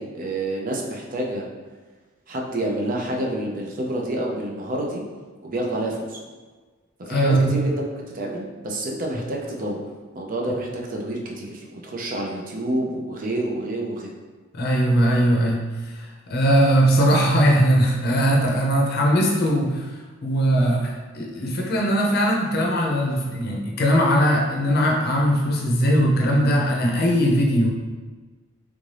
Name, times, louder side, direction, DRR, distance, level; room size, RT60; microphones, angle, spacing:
voice 1, 0.0-1.5 2.3-5.0 5.4-6.2 7.0-7.7 8.1-9.9 10.1-14.1, right 1 dB, 45° right, -1 dB, 0.5 m, -28 dB
voice 2, 7.1-7.7 14.5-19.9 20.2-27.7, equal, 50° left, -1 dB, 0.6 m, -20 dB
3.5 x 2.6 x 3.2 m, 1.4 s
head